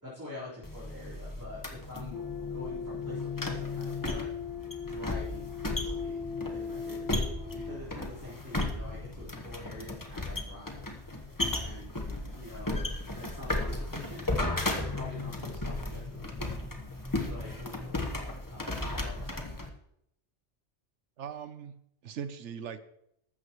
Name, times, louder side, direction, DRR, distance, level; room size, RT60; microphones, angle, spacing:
voice 1, 0.0-4.3 4.8-6.2 6.5-11.2 11.5-12.0 12.3-12.9 13.2-14.2 14.7-16.8 17.3-19.5, left 2 dB, 15° right, -10 dB, 4.1 m, -46 dB
sound 1, 0.6-19.7, left 2 dB, 15° left, 1.1 m, -35 dB
sound 2, 2.1-7.8, left 6 dB, 50° left, 1.8 m, -38 dB
voice 2, 21.2-22.8, right 7 dB, 75° right, 12 dB, 1.1 m, -40 dB
14.5 x 12.5 x 3.1 m, 0.77 s
omnidirectional pair, 1.2 m